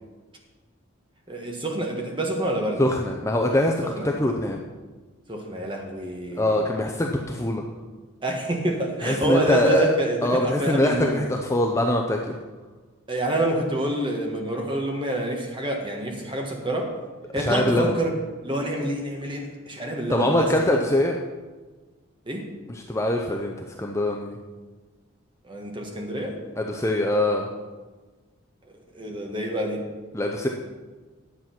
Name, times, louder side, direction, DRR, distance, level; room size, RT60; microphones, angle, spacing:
voice 1, 1.3-2.9 3.8-4.1 5.3-6.6 8.2-11.2 13.1-16.9 17.3-18.1 18.4-20.5 22.3-22.5 25.4-26.4 28.9-29.8, right 1 dB, 25° right, 1 dB, 1.4 m, -27 dB
voice 2, 2.8-4.6 6.4-7.6 9.0-10.0 10.2-12.3 17.4-17.9 20.1-21.2 22.7-24.4 26.6-27.4 30.1-30.5, left 1 dB, 15° left, 1 dB, 0.5 m, -23 dB
10.5 x 7.6 x 5.9 m, 1.3 s
head